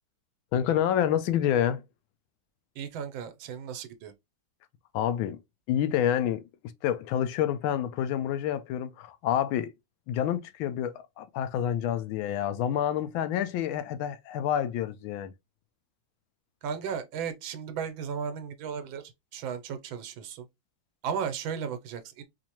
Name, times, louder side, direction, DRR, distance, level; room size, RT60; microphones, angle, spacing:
voice 1, 0.5-1.8 4.9-5.4 5.7-6.4 6.8-9.7 10.1-15.3, left 10 dB, 85° left, 1.4 m, -28 dB
voice 2, 2.8-4.1 16.6-19.0 19.3-20.4 21.0-22.2, right 7 dB, 80° right, 1.4 m, -35 dB
4.4 x 2.6 x 2.9 m
omnidirectional pair, 2.1 m